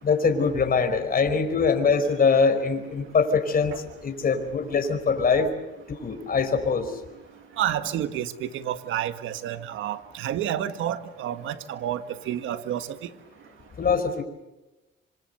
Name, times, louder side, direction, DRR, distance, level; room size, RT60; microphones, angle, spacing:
voice 1, 0.0-3.7 4.0-5.5 6.0-6.9 13.8-14.2, left 5 dB, 45° left, 6 dB, 4.8 m, -23 dB
voice 2, 7.6-13.1, right 11 dB, 85° right, 10 dB, 1.8 m, -30 dB
26.5 x 26.5 x 6.8 m, 1.0 s
cardioid pair, 90°, 20 cm